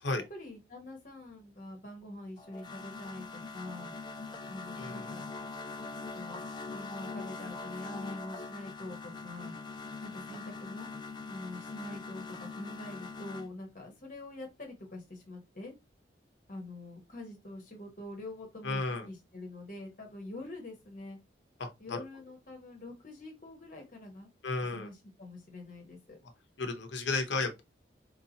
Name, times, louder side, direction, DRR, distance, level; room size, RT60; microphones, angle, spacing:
voice 1, 0.3-3.3 3.5-3.9 4.5-5.2 6.1-6.4 6.7-9.5 10.0-10.9 11.3-15.7 16.5-21.2 21.8-24.3 24.7-26.2, left 2 dB, 45° left, 1.0 m, -45 dB
sound 1, 2.4-13.5, left 3 dB, 25° left, 0.3 m, -42 dB
voice 2, 4.8-5.2 18.6-19.1 21.6-22.0 24.4-24.9 26.6-27.6, left 3 dB, 75° left, 0.7 m, -33 dB
4.5 x 2.8 x 2.8 m
head